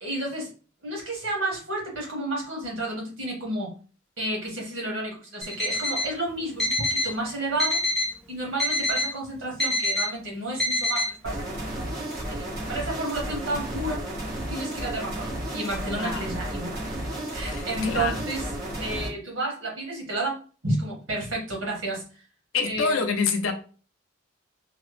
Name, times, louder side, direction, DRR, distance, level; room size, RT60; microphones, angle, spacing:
voice 1, 0.0-0.5 0.8-3.7 4.2-7.8 8.3-12.0 12.3-14.0 14.5-16.8 17.3-18.5 18.8-20.4 20.6-22.2 22.6-23.5, right 1 dB, 85° right, 1.6 m, -31 dB
Alarm, 5.4-6.1 6.6-7.1 7.6-8.1 8.6-9.1 9.6-10.1 10.6-11.1, left 1 dB, ahead, 0.6 m, -25 dB
sound 1, 11.2-19.1, right 1 dB, 55° right, 1.2 m, -33 dB
voice 2, 16.0-16.3 17.4-18.2 22.5-23.5, left 4 dB, 80° left, 0.6 m, -27 dB
3.2 x 2.0 x 3.1 m
head